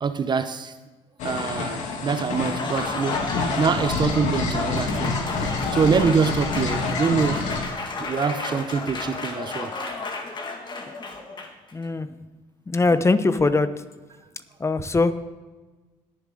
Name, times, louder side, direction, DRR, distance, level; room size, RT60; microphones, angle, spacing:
voice 1, 0.0-0.7 1.2-3.2 3.6-5.2 5.7-7.4 8.0-9.7, right 5 dB, 35° right, 11 dB, 0.6 m, -24 dB
sound 1, 1.2-7.7, left 3 dB, 75° left, 1.9 m, -28 dB
Applause, 2.3-11.7, left 3 dB, 40° left, 1.9 m, -32 dB
voice 2, 11.7-12.1 12.7-13.7 14.6-15.1, left 3 dB, 20° left, 12 dB, 0.8 m, -21 dB
20.5 x 7.2 x 3.7 m, 1.2 s
supercardioid pair, 80°, 13 cm